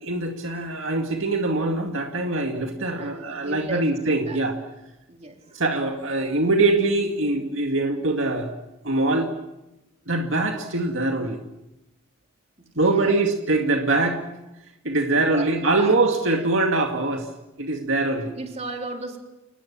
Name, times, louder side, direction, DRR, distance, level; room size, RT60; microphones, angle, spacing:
voice 1, 0.0-4.6 5.5-8.5 8.8-9.3 10.1-11.4 12.8-14.2 14.8-17.3 17.6-18.3, right 2 dB, 65° right, 3 dB, 2.2 m, -23 dB
voice 2, 3.0-4.4 5.1-5.6 12.6-13.2 15.1-16.0 16.3-16.5 18.4-19.2, right 2 dB, 30° right, 2 dB, 3.8 m, -36 dB
29.5 x 20.0 x 7.3 m, 0.96 s
head